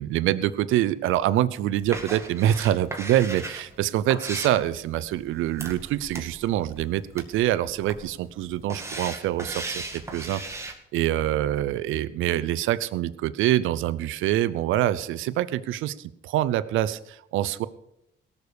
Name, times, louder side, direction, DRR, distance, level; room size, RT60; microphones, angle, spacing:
voice 1, 0.0-17.7, right 13 dB, 85° right, 15 dB, 0.6 m, -25 dB
sound 1, 1.8-10.7, right 2 dB, 15° right, 2.1 m, -38 dB
17.5 x 6.8 x 6.8 m, 0.80 s
cardioid pair, 90°, 20 cm